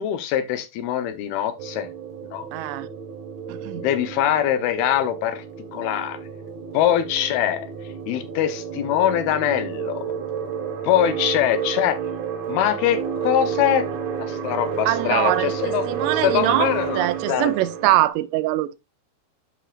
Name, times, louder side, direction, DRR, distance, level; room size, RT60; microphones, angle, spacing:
voice 1, 0.0-1.9 2.3-2.5 3.7-5.4 5.7-6.2 6.7-7.7 8.1-10.1 10.8-12.0 12.5-13.9 14.2-17.5, left 11 dB, 70° left, 2.6 m, -23 dB
sound 1, 1.6-18.1, right 7 dB, 65° right, 1.9 m, -30 dB
voice 2, 2.5-2.9 3.5-3.8 14.9-16.7 16.9-18.8, right 16 dB, 80° right, 2.7 m, -23 dB
11.5 x 5.5 x 2.4 m
omnidirectional pair, 5.1 m